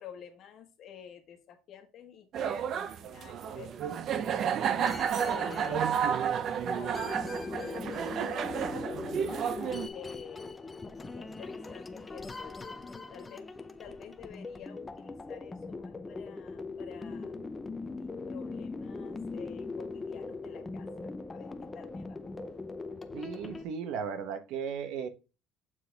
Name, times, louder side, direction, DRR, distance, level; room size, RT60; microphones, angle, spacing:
voice 1, 0.0-4.6 5.2-6.3 6.8-7.0 7.4-9.3 9.9-10.6 11.1-12.6 13.1-13.5 13.8-17.4 17.8-22.2, left 8 dB, 45° left, 5 dB, 1.4 m, -50 dB
sound 1, 2.3-9.9, right 8 dB, 45° right, 0.5 m, -31 dB
sound 2, 4.8-23.7, left 3 dB, 15° left, 0.6 m, -41 dB
voice 2, 23.1-25.1, right 6 dB, 65° right, 9 dB, 1.0 m, -36 dB
7.4 x 4.1 x 3.5 m, 0.29 s
cardioid pair, 145°, 0 cm